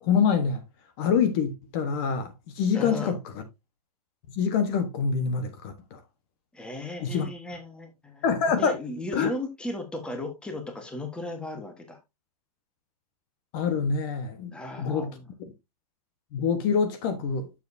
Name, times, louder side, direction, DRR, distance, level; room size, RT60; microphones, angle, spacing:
voice 1, 0.0-0.6 1.0-3.4 4.3-6.0 7.0-7.3 8.2-8.8 9.1-9.3 13.5-15.1 16.3-17.5, left 6 dB, 40° left, 1.2 m, -26 dB
voice 2, 2.7-3.1 6.5-8.2 8.6-12.0 14.5-15.3, left 2 dB, 5° left, 1.3 m, -35 dB
7.8 x 7.0 x 2.7 m
hypercardioid pair, 155°, 20 cm